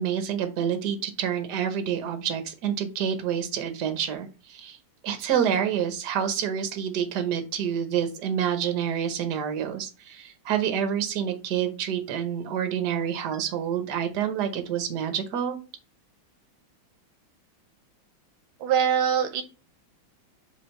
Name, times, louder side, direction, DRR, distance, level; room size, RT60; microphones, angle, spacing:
voice 1, 0.0-4.8 5.0-15.6, right 8 dB, 60° right, 8 dB, 1.4 m, -28 dB
voice 2, 18.6-19.4, right 8 dB, 80° right, 9 dB, 1.5 m, -23 dB
5.0 x 3.6 x 5.4 m, 0.32 s
omnidirectional pair, 2.3 m